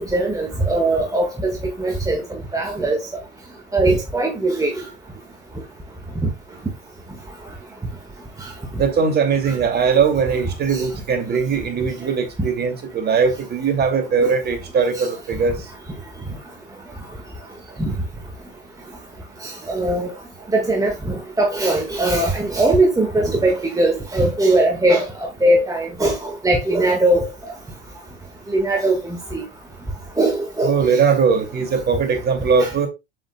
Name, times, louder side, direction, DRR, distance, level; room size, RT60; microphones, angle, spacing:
voice 1, 0.0-1.5 1.8-2.2 2.5-3.0 3.7-4.7 6.2-6.3 8.4-8.5 10.7-10.8 14.2-14.3 15.0-15.1 17.8-17.9 19.4-20.1 20.5-27.3 28.5-29.4 30.2-30.7 32.6-32.7, right 2 dB, 10° right, 1.7 m, -20 dB
voice 2, 8.8-15.6 30.6-32.9, right 5 dB, 30° right, 2.5 m, -20 dB
7.6 x 7.2 x 2.3 m
figure-of-eight pair, 80°, 33 cm